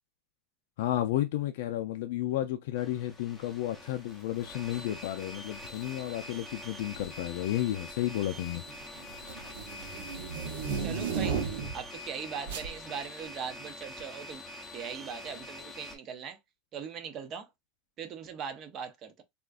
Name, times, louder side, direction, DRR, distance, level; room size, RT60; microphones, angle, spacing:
voice 1, 0.8-8.6, left 13 dB, 70° left, 0.4 m, -32 dB
sound 1, 2.8-16.0, left 1 dB, 5° left, 0.7 m, -45 dB
sound 2, 5.5-5.8 6.8-7.3 7.6-11.9 12.5-12.7, right 6 dB, 75° right, 0.9 m, -35 dB
voice 2, 10.8-11.4 11.7-14.4 14.7-16.4 16.7-17.5 18.0-19.2, right 7 dB, 30° right, 0.6 m, -40 dB
3.6 x 2.4 x 2.3 m
supercardioid pair, 160°, 0 cm